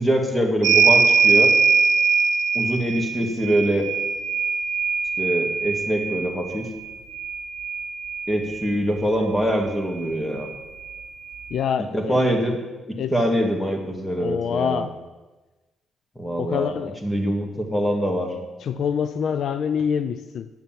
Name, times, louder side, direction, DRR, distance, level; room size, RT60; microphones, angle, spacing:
voice 1, 0.0-1.6 2.5-3.9 5.2-6.7 8.3-10.5 11.9-12.6 12.9-14.8 16.2-16.7 17.0-18.3, equal, 10° left, 3 dB, 2.2 m, -24 dB
sound 1, 0.6-8.8 10.0-10.1 10.4-11.5, right 5 dB, 75° right, 0.6 m, -22 dB
voice 2, 11.5-12.2 13.0-13.1 14.1-14.9 16.4-17.0 18.6-20.5, left 7 dB, 65° left, 12 dB, 0.4 m, -26 dB
10.0 x 6.9 x 7.6 m, 1.1 s
cardioid pair, 90°, 0 cm